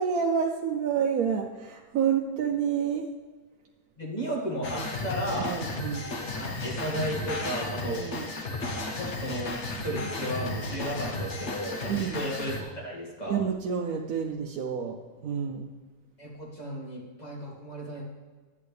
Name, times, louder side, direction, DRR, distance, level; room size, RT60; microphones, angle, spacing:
voice 1, 0.0-3.1 5.4-6.0 8.0-8.3 11.9-12.2 13.3-15.0 15.2-15.7, right 7 dB, 75° right, 1 dB, 1.1 m, -28 dB
voice 2, 4.0-5.6 6.4-8.0 8.7-13.5 16.2-18.0, equal, 25° left, -4 dB, 2.3 m, -34 dB
sound 1, 4.6-12.6, left 2 dB, 50° left, 1.3 m, -34 dB
11.0 x 8.7 x 3.3 m, 1.4 s
omnidirectional pair, 1.6 m